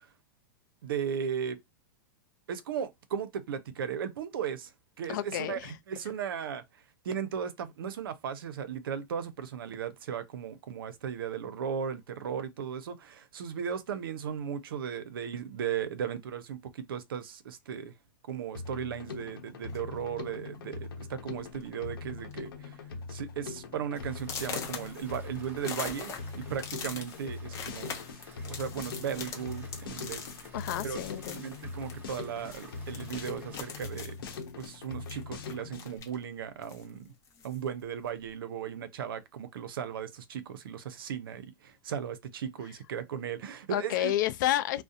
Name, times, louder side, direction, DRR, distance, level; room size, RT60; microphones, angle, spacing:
voice 1, 0.8-1.6 2.5-4.7 5.0-6.6 7.0-17.9 18.3-22.8 23.1-27.9 28.4-30.5 30.8-34.1 34.6-37.1 37.4-44.1, right 8 dB, 85° right, 0.5 m, -36 dB
voice 2, 5.1-5.7 30.5-31.4 43.7-44.8, left 13 dB, 60° left, 0.4 m, -30 dB
Drum kit, 18.5-36.0, left 4 dB, 85° left, 0.8 m, -42 dB
sound 1, 19.7-20.0 20.8-20.9 21.3-21.6 21.9-22.3 22.7-22.8 23.3-23.4 24.2-32.2 32.5-36.2 36.6-37.6, left 6 dB, 25° left, 0.7 m, -42 dB
sound 2, 23.9-33.8, right 2 dB, 15° right, 0.9 m, -55 dB
2.6 x 2.0 x 2.4 m
hypercardioid pair, 135°, 12 cm